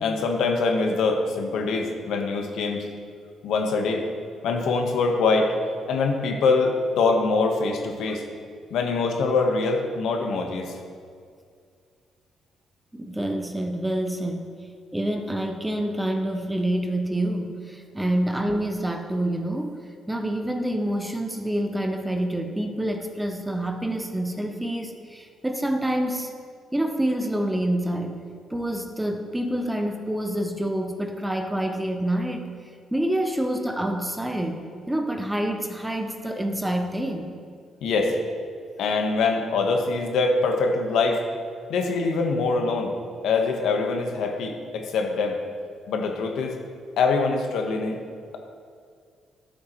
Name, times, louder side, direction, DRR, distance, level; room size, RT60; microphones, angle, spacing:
voice 1, 0.0-2.8 3.4-4.0 4.4-5.5 5.9-8.2 8.7-10.7 37.8-38.1 38.8-41.2 41.7-42.9 43.2-45.4 45.9-46.6 47.0-48.0, left 4 dB, 75° left, 3 dB, 1.1 m, -24 dB
voice 2, 12.9-14.5 14.9-19.8 20.1-26.3 26.7-28.2 28.5-32.5 32.9-37.3, right 1 dB, 5° right, 5 dB, 0.5 m, -27 dB
12.5 x 7.2 x 3.0 m, 2.2 s
cardioid pair, 150°, 0 cm